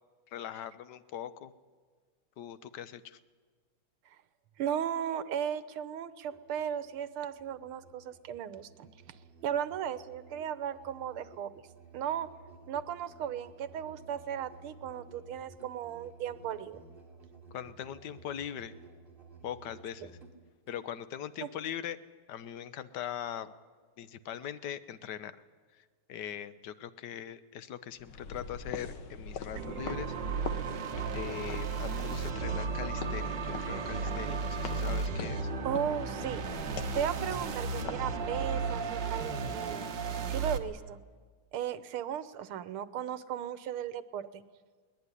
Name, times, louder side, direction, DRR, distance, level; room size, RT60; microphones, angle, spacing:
voice 1, 0.3-1.5 2.4-3.2 17.5-18.8 19.4-20.2 20.7-22.0 22.3-23.5 24.0-25.3 26.1-30.1 31.1-35.5, left 10 dB, 60° left, 13 dB, 1.3 m, -41 dB
voice 2, 4.6-8.9 9.4-11.5 11.9-12.3 12.7-16.8 20.0-20.1 21.4-21.5 35.6-36.4 36.9-39.9 40.3-41.0 41.5-44.4, right 9 dB, 85° right, 14 dB, 1.8 m, -36 dB
Musical instrument, 6.2-20.8, right 3 dB, 25° right, 3.0 m, -55 dB
sound 1, 28.0-38.9, left 5 dB, 75° left, 2.2 m, -44 dB
sound 2, 29.5-40.6, right 4 dB, 60° right, 2.0 m, -34 dB
21.5 x 19.5 x 9.8 m, 1.5 s
omnidirectional pair, 2.3 m